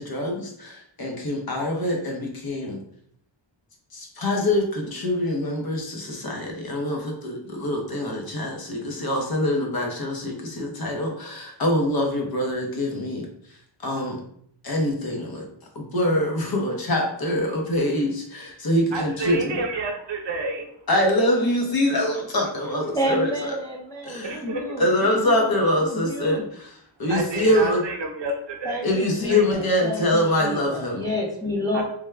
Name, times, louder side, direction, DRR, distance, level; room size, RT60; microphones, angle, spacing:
voice 1, 0.0-2.8 3.9-14.2 14.6-15.5 15.7-19.6 20.9-23.6 24.0-24.4 24.8-26.7 27.0-27.8 28.8-31.1, left 1 dB, 50° left, 0 dB, 0.8 m, -24 dB
voice 2, 18.9-20.7 24.2-24.8 27.1-28.8 29.3-29.4 31.7-31.8, right 2 dB, 65° right, 2 dB, 0.7 m, -29 dB
voice 3, 22.9-26.5 28.6-31.8, equal, 10° left, -3 dB, 0.4 m, -30 dB
3.4 x 2.2 x 3.2 m, 0.66 s
wide cardioid pair, 175°, 47 cm